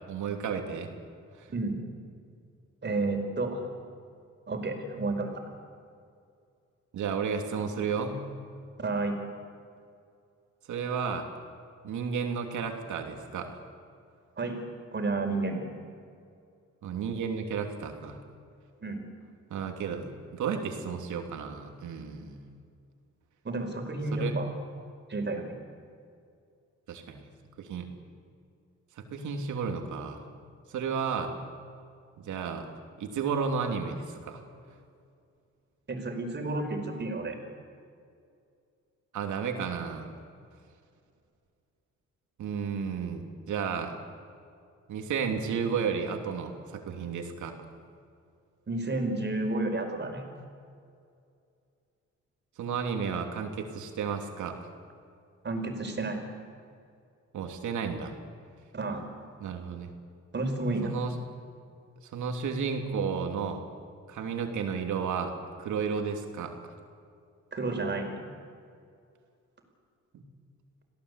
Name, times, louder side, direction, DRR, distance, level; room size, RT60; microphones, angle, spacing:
voice 1, 0.1-0.9 1.4-1.5 6.9-8.2 10.7-11.3 11.8-13.5 16.8-18.2 19.5-22.4 24.1-24.3 26.9-27.2 27.6-27.9 29.0-30.2 30.7-31.3 32.2-32.7 33.0-34.4 39.1-40.1 42.4-44.0 44.9-47.6 52.6-54.6 57.3-58.1 59.4-59.9 60.8-61.1 62.0-63.6 64.1-65.3 65.6-66.7 70.1-70.2, right 6 dB, 75° right, 4 dB, 3.1 m, -32 dB
voice 2, 2.8-3.6 4.5-5.3 8.8-9.2 14.4-15.6 18.8-19.0 23.4-24.5 25.1-25.5 35.9-37.4 48.7-50.3 55.4-56.2 58.7-59.0 60.3-60.9 67.5-68.2, right 2 dB, 35° right, 4 dB, 4.9 m, -31 dB
27.0 x 17.5 x 8.3 m, 2.4 s
cardioid pair, 90°, 30 cm